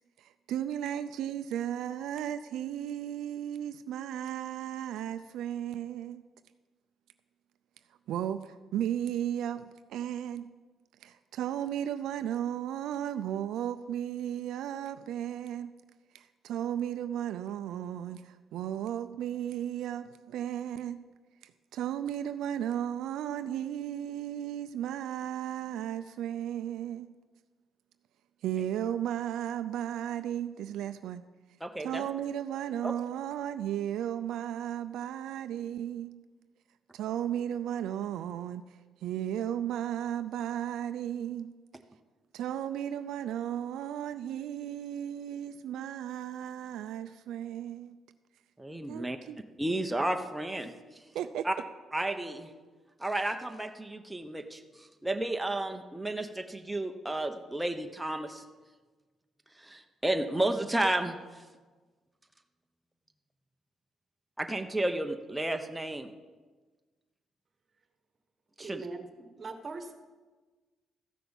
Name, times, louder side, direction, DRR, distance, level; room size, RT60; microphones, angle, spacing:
voice 1, 0.2-6.2 8.1-10.5 11.0-15.7 16.1-21.0 21.4-27.1 28.4-31.2 31.8-36.1 36.9-38.6 39.0-41.5 42.3-48.0 48.9-49.4 51.1-51.5, right 10 dB, 85° right, 10 dB, 0.4 m, -35 dB
voice 2, 31.6-32.0 32.8-32.9 48.6-49.2 49.6-50.7 51.4-51.5 51.9-52.5 53.0-58.4 59.6-61.4 64.4-66.1 68.6-68.8, right 1 dB, 10° right, 5 dB, 0.9 m, -32 dB
voice 3, 68.6-69.1 69.4-69.9, right 4 dB, 35° right, 7 dB, 1.4 m, -40 dB
14.0 x 5.9 x 7.1 m, 1.3 s
cardioid pair, 90°, 0 cm